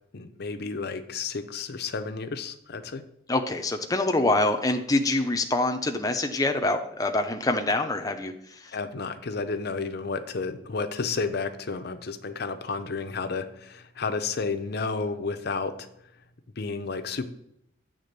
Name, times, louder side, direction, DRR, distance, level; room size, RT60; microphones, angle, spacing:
voice 1, 0.1-3.0 8.7-15.9 16.6-17.3, left 4 dB, 55° left, 10 dB, 0.6 m, -31 dB
voice 2, 3.3-8.3, left 2 dB, 20° left, 5 dB, 0.6 m, -25 dB
8.5 x 3.6 x 6.6 m, 0.78 s
head